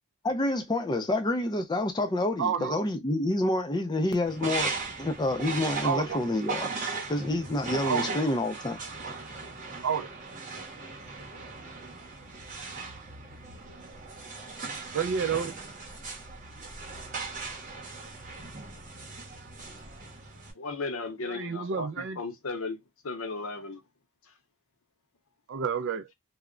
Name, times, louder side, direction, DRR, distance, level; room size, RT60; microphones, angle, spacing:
voice 1, 0.2-4.7 5.0-6.7 7.1-8.8, left 1 dB, 20° left, 0.5 m, -28 dB
voice 2, 2.4-2.8 5.8-6.2 7.9-8.1 9.8-10.1 14.9-15.5 21.2-22.2 25.5-26.1, right 7 dB, 55° right, 0.4 m, -29 dB
sound 1, 4.2-20.5, right 4 dB, 35° right, 0.8 m, -38 dB
voice 3, 20.5-23.8, left 3 dB, 60° left, 0.7 m, -36 dB
2.2 x 2.0 x 3.6 m
head